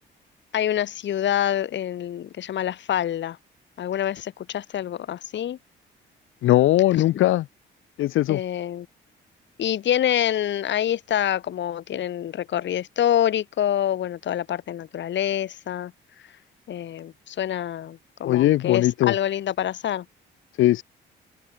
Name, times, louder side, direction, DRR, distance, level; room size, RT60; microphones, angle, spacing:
voice 1, 0.5-3.4 3.8-5.6 6.9-7.0 8.3-8.9 9.6-15.9 16.7-20.0, left 10 dB, 65° left, 2.4 m, -26 dB
voice 2, 6.4-7.4 8.0-8.4 18.2-19.1 20.6-20.8, left 15 dB, 85° left, 2.8 m, -19 dB
open air
cardioid pair, 90°, 20 cm